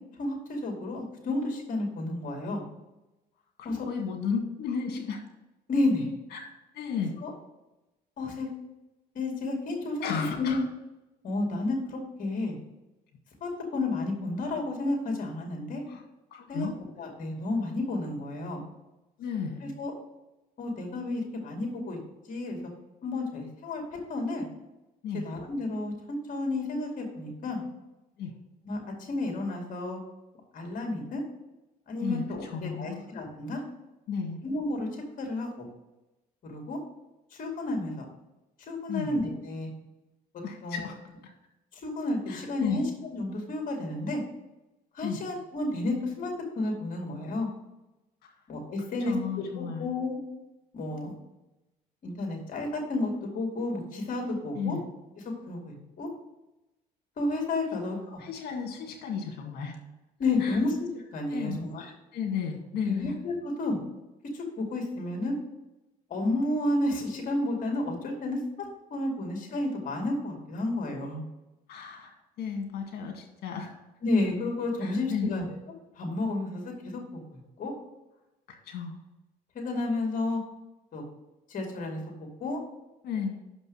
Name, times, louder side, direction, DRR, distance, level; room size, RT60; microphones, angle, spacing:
voice 1, 0.2-2.6 3.6-3.8 5.7-6.1 7.2-7.3 8.2-8.5 9.1-10.1 10.4-10.6 11.2-12.6 13.4-15.8 16.5-16.7 17.0-18.6 19.6-19.9 20.6-22.0 22.3-22.6 23.0-23.8 24.1-24.5 25.1-27.6 28.6-30.0 30.5-31.2 31.9-33.6 34.4-34.9 35.2-35.7 36.4-36.8 37.3-38.1 38.7-39.7 40.6-40.9 41.7-44.2 44.9-46.3 46.6-47.5 48.5-49.1 49.5-50.2 50.7-51.1 52.0-54.8 55.5-56.1 57.2-58.2 60.2-61.9 62.8-63.8 64.3-65.3 66.1-68.4 68.9-71.2 74.0-75.5 76.0-77.7 79.5-80.4 80.9-81.0 81.5-82.6, left 2 dB, 50° left, 1 dB, 2.4 m, -31 dB
voice 2, 3.6-5.2 6.3-6.4 6.7-7.2 10.0-10.6 15.9-16.0 16.3-16.7 19.2-19.6 25.0-25.3 28.2-28.3 32.0-33.1 34.1-34.4 38.9-39.2 40.4-40.9 42.3-42.8 45.0-45.2 49.1-49.9 54.6-54.8 57.7-57.8 58.2-59.8 60.4-60.6 61.3-61.6 62.1-63.1 71.7-73.7 74.8-75.4 78.7-78.9 83.0-83.4, left 6 dB, 70° left, 2 dB, 1.9 m, -33 dB
6.2 x 5.3 x 6.4 m, 0.99 s
cardioid pair, 110°, 17 cm